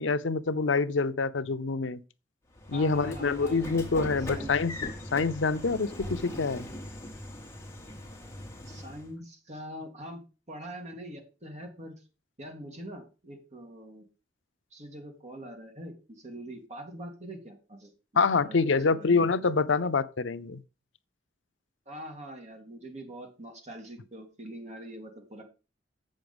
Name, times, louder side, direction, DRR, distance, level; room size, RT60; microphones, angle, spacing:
voice 1, 0.0-2.0 2.7-6.7 18.2-20.6, left 4 dB, 85° left, 0.6 m, -26 dB
Train / Sliding door, 2.5-9.1, left 1 dB, 15° left, 1.7 m, -40 dB
voice 2, 2.7-4.5 8.1-10.2 10.5-12.0 12.4-14.1 14.7-18.6 18.9-19.2 21.9-25.4, right 1 dB, 40° right, 2.3 m, -44 dB
7.9 x 6.4 x 5.2 m
head